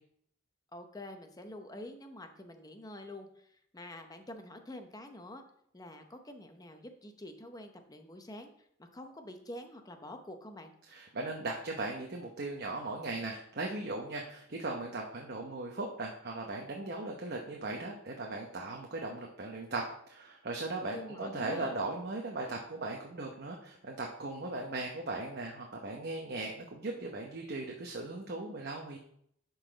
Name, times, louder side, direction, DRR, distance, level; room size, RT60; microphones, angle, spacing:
voice 1, 0.7-5.4 5.7-10.7 20.9-21.7, left 1 dB, 20° left, 6 dB, 0.7 m, -47 dB
voice 2, 10.9-19.8 20.1-29.0, right 2 dB, 50° right, 1 dB, 0.8 m, -38 dB
11.5 x 4.0 x 3.9 m, 0.69 s
head